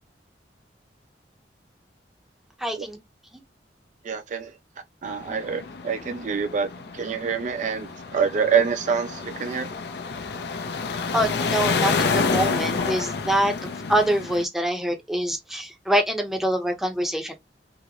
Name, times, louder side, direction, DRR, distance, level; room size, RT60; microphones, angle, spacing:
voice 1, 2.6-3.0 3.3-3.4 11.1-17.3, right 1 dB, ahead, 0.7 m, -25 dB
voice 2, 4.0-4.5 5.0-9.7, right 6 dB, 45° right, 0.4 m, -26 dB
sound 1, 5.1-14.4, left 4 dB, 65° left, 0.5 m, -29 dB
3.7 x 2.0 x 2.9 m
head